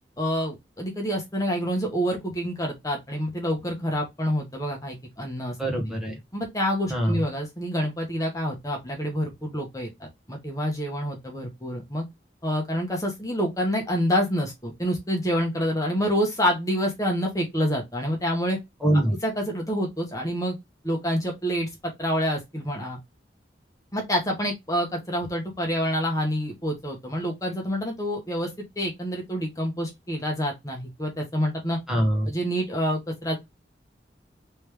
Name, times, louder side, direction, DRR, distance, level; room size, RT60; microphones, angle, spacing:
voice 1, 0.2-5.5 6.3-12.1 12.4-18.6 19.2-20.6 20.8-23.0 23.9-31.8 32.3-33.4, equal, 20° left, 1.0 m, -27 dB
voice 2, 5.6-6.2 6.9-7.2 18.8-19.1 31.9-32.3, right 1 dB, 5° right, 1.0 m, -23 dB
3.3 x 3.1 x 3.2 m
head